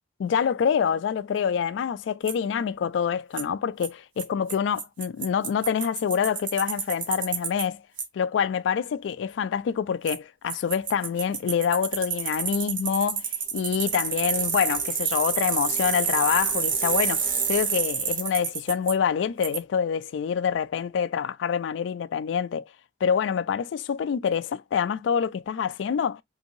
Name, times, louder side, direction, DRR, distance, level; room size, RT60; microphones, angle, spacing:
voice 1, 0.2-7.8 8.1-13.2 13.5-22.7 23.0-26.2, left 7 dB, 75° left, 0.3 m, -26 dB
Bicycle, 2.3-2.4 3.4-3.5 3.8-3.9 4.2-4.3 4.5-4.6 4.8-7.6 8.0-8.1 10.1-10.2 10.5-18.9 19.4-19.6, right 6 dB, 50° right, 1.0 m, -28 dB
2.8 x 2.6 x 2.5 m
head